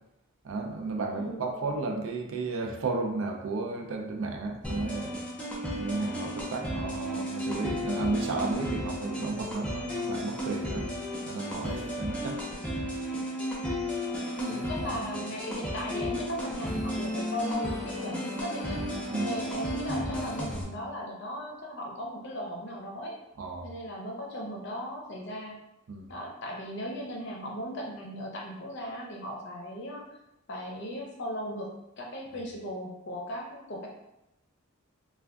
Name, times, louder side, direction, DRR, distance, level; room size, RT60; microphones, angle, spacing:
voice 1, 0.4-5.2 5.7-10.9 11.3-12.4 14.5-14.6 14.9-15.1 19.1-19.3 23.4-23.7 25.9-26.1, right 3 dB, 70° right, 3 dB, 0.4 m, -33 dB
sound 1, 4.6-20.6, equal, 5° left, 0.5 m, -33 dB
voice 2, 14.3-18.8 19.2-23.2 23.6-25.6 26.1-30.1 30.5-33.9, equal, 55° left, -1 dB, 0.6 m, -37 dB
2.5 x 2.3 x 3.4 m, 0.89 s
head